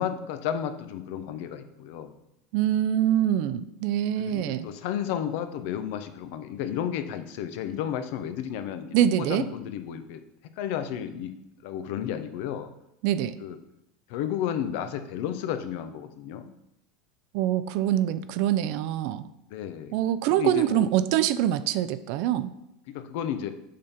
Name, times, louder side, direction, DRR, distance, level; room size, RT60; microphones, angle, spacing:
voice 1, 0.0-2.1 4.2-8.9 9.2-10.2 10.6-11.3 11.6-12.7 13.4-13.6 14.1-16.5 19.5-19.9 20.4-20.9 22.9-23.5, left 9 dB, 65° left, 9 dB, 0.7 m, -32 dB
voice 2, 2.5-4.7 8.9-9.4 13.0-13.4 17.3-19.3 19.9-22.5, right 11 dB, 65° right, 12 dB, 0.4 m, -24 dB
6.6 x 3.6 x 5.7 m, 0.86 s
hypercardioid pair, 100°, 0 cm